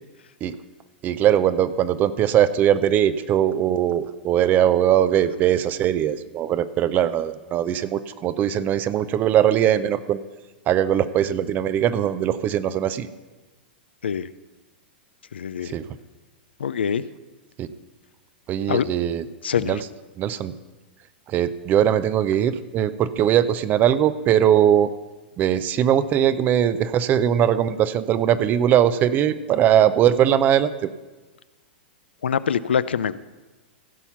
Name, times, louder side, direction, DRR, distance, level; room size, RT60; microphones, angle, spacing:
voice 1, 1.0-10.2 10.7-13.1 15.6-15.9 17.6-17.7 18.5-19.2 19.7-19.8 20.2-20.5 21.3-24.9 25.4-30.9, right 10 dB, 30° right, 14 dB, 0.5 m, -20 dB
voice 2, 15.3-15.7 16.6-17.0 18.7-18.9 19.4-19.8 32.2-33.2, left 7 dB, 85° left, 16 dB, 0.4 m, -24 dB
16.0 x 5.8 x 5.7 m, 1.2 s
hypercardioid pair, 115°, 6 cm